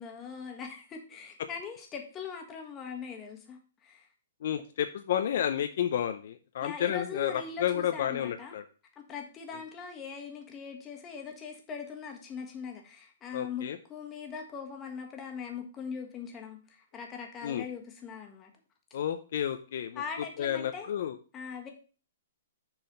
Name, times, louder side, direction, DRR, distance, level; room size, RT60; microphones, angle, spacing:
voice 1, 0.0-4.1 6.6-8.5 8.9-18.5 19.9-20.9 21.3-21.7, left 6 dB, 20° left, 2 dB, 1.4 m, -41 dB
voice 2, 4.4-8.6 13.3-13.8 17.4-17.7 18.9-20.0 20.4-21.2, left 10 dB, 60° left, 8 dB, 0.5 m, -31 dB
6.6 x 4.0 x 5.4 m, 0.37 s
hypercardioid pair, 145°, 0 cm